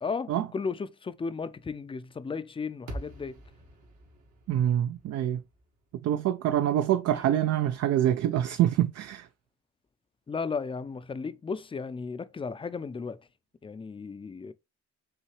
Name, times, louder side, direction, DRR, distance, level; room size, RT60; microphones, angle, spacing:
voice 1, 0.0-3.4 7.2-7.3 10.3-13.2 13.6-14.5, left 5 dB, 20° left, 0.4 m, -35 dB
sound 1, 2.9-7.2, right 1 dB, 75° right, 1.9 m, -45 dB
voice 2, 4.5-5.4 6.0-9.3, right 11 dB, 55° right, 0.4 m, -25 dB
5.6 x 2.8 x 3.1 m
cardioid pair, 90°, 30 cm